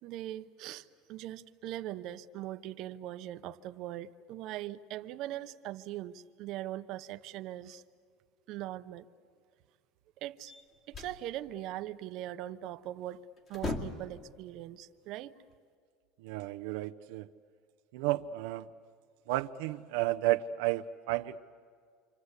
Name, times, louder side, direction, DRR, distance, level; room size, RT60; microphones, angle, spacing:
voice 1, 0.0-7.8 8.5-9.1 10.2-10.5 10.9-15.4, right 13 dB, 50° right, 10 dB, 0.8 m, -41 dB
sound 1, 10.5-11.2 12.8-13.0 13.4-14.2, left 2 dB, 30° left, 2.3 m, -38 dB
voice 2, 16.2-17.3 17.9-18.7 19.3-21.4, right 15 dB, 80° right, 7 dB, 0.6 m, -32 dB
28.0 x 26.0 x 8.2 m, 2.1 s
cardioid pair, 155°, 0 cm